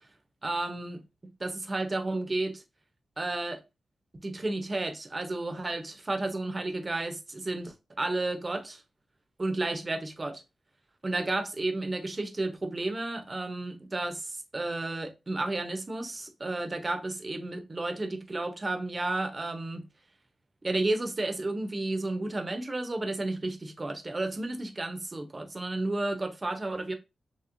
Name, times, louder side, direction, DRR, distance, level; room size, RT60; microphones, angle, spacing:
voice 1, 0.4-1.0 1.4-2.6 3.2-3.6 4.2-8.8 9.4-10.4 11.0-19.8 20.6-26.9, right 2 dB, 30° right, 0.6 m, -32 dB
2.9 x 2.8 x 2.5 m
cardioid pair, 75°, 0 cm